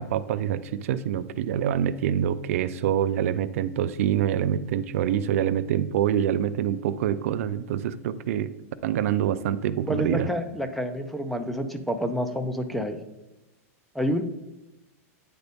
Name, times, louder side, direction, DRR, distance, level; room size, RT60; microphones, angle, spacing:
voice 1, 0.0-8.5 8.8-10.3, right 10 dB, 65° right, 13 dB, 0.4 m, -26 dB
voice 2, 9.9-13.0 13.9-14.2, equal, ahead, 7 dB, 0.4 m, -28 dB
9.0 x 4.0 x 3.5 m, 0.95 s
supercardioid pair, 155°, 8 cm